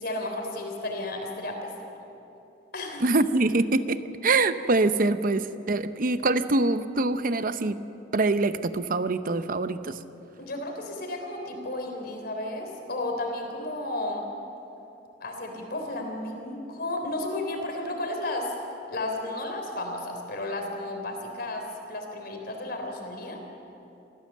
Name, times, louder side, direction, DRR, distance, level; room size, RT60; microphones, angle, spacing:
voice 1, 0.0-1.7 2.7-3.0 10.4-14.2 15.2-18.5 18.9-23.4, left 2 dB, 60° left, 3 dB, 3.7 m, -33 dB
voice 2, 3.0-7.8 8.1-10.0, right 2 dB, 50° right, 11 dB, 0.8 m, -24 dB
24.5 x 15.5 x 7.5 m, 2.8 s
head